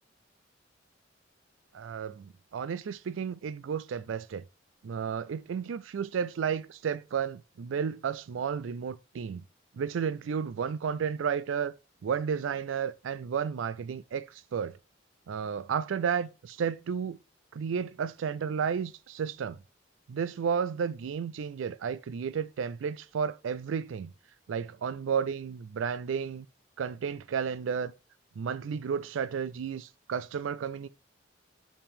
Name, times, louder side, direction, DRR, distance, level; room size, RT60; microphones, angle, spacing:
voice 1, 1.7-4.4 4.8-9.4 9.7-11.7 12.0-14.8 15.3-17.2 17.5-19.6 20.1-24.1 24.5-26.5 26.8-27.9 28.4-30.9, right 7 dB, 85° right, 0.4 m, -32 dB
7.0 x 5.2 x 3.5 m
head